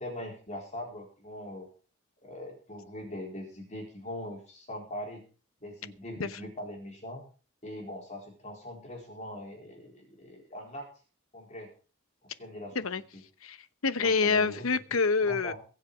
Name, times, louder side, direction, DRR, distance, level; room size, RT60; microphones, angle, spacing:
voice 1, 0.0-1.7 2.2-5.2 5.6-7.2 7.6-10.9 11.3-11.7 12.4-12.8 14.0-14.7 15.3-15.5, left 1 dB, 35° left, 4.3 m, -41 dB
voice 2, 13.4-15.5, left 4 dB, 75° left, 0.9 m, -27 dB
22.5 x 7.5 x 5.0 m
head